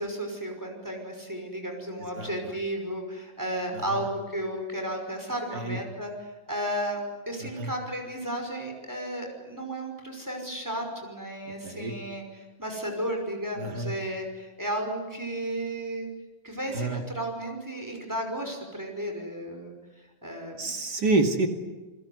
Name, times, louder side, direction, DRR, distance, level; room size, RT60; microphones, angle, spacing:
voice 1, 0.0-7.0 7.3-16.1 16.4-19.8 20.2-20.7, right 1 dB, 10° right, 3 dB, 5.7 m, -33 dB
voice 2, 7.4-7.7 11.6-11.9 13.6-13.9 16.7-17.0 20.6-21.5, right 3 dB, 55° right, 5 dB, 3.0 m, -28 dB
30.0 x 20.5 x 9.6 m, 1.2 s
omnidirectional pair, 2.1 m